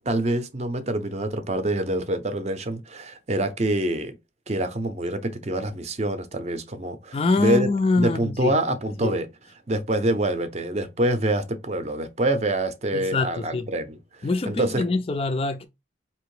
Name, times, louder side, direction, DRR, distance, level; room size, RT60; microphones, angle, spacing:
voice 1, 0.1-4.1 4.5-7.7 8.0-9.3 9.7-14.8, right 1 dB, 35° right, 0.6 m, -26 dB
voice 2, 7.1-8.5 9.0-9.2 12.9-13.6 14.2-15.6, left 3 dB, 30° left, 0.3 m, -24 dB
4.3 x 2.9 x 3.2 m
head